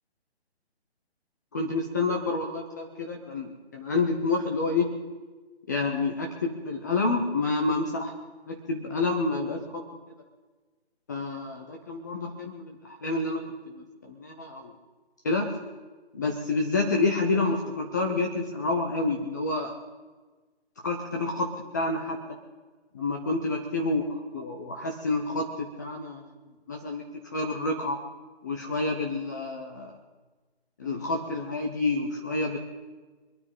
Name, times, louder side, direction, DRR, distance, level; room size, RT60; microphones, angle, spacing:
voice 1, 1.5-4.9 5.7-8.1 8.5-9.8 11.1-14.7 15.2-15.5 16.1-19.7 20.8-22.2 22.9-24.0 24.3-26.2 26.7-27.1 27.3-28.0 28.4-29.9 30.8-32.6, left 3 dB, 15° left, 2 dB, 0.8 m, -28 dB
24.0 x 9.4 x 5.5 m, 1.3 s
figure-of-eight pair, 155°, 33 cm